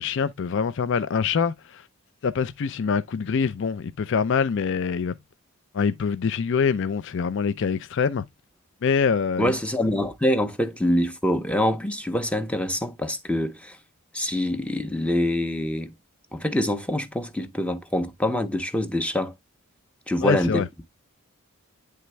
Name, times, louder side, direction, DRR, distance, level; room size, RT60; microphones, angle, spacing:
voice 1, 0.0-1.9 2.2-5.1 5.7-8.2 8.8-9.5 20.2-20.7, left 6 dB, 55° left, 0.4 m, -24 dB
voice 2, 9.4-13.8 14.1-15.9 16.3-19.3 20.1-20.6, left 1 dB, 5° left, 0.6 m, -25 dB
9.3 x 3.4 x 3.2 m
head